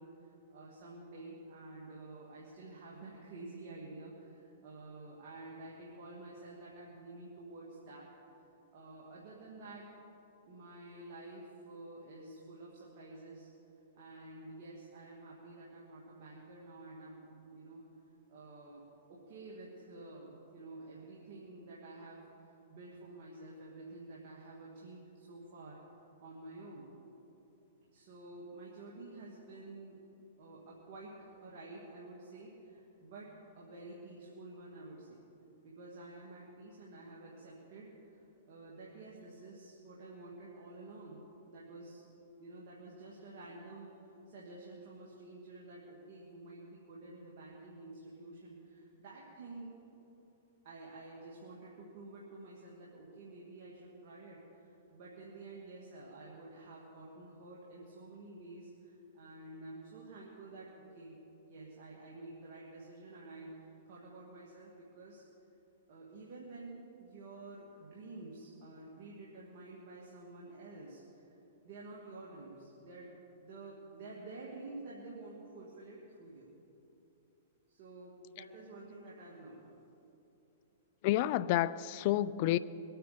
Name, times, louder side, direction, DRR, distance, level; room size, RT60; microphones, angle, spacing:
voice 1, 0.0-8.1 8.7-9.8 10.5-13.5 13.9-17.9 18.3-25.8 26.2-26.9 27.9-30.0 30.4-35.2 35.6-42.0 42.4-44.0 44.3-49.8 50.6-61.2 61.5-65.2 65.9-71.4 71.6-73.1 73.4-76.5 77.7-79.6, right 2 dB, 55° right, 2.4 m, -50 dB
voice 2, 81.0-82.6, left 14 dB, 50° left, 0.4 m, -29 dB
22.0 x 9.0 x 5.2 m
hypercardioid pair, 125°, 0 cm